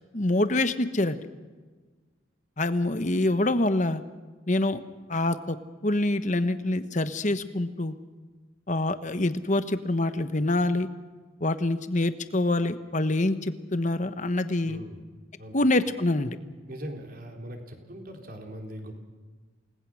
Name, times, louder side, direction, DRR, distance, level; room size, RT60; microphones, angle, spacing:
voice 1, 0.1-1.3 2.6-4.0 4.5-4.8 5.1-5.6 5.8-7.9 8.7-10.9 11.4-14.8 15.5-16.4, left 2 dB, 40° left, 10 dB, 1.2 m, -25 dB
voice 2, 14.6-15.0 15.4-15.6 16.7-19.0, equal, 50° right, 2 dB, 3.8 m, -40 dB
29.0 x 20.0 x 6.4 m, 1.4 s
head